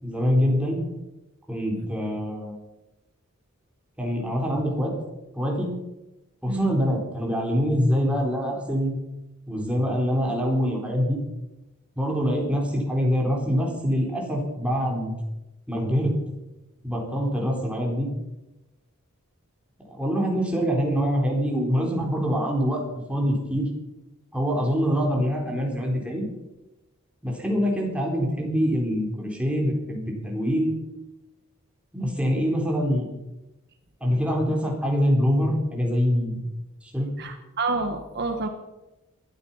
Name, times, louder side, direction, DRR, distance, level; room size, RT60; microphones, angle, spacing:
voice 1, 0.0-0.8 1.5-2.6 4.0-4.9 5.3-5.7 6.4-8.9 9.5-11.2 12.0-15.1 15.7-16.1 16.8-18.1 19.9-22.8 23.1-23.7 24.3-26.3 27.2-30.8 31.9-33.1 34.0-36.4 36.8-37.1, equal, 5° right, -1 dB, 4.2 m, -24 dB
voice 2, 6.5-6.8 37.2-38.5, right 3 dB, 50° right, 6 dB, 1.4 m, -29 dB
19.5 x 13.0 x 5.7 m, 0.99 s
head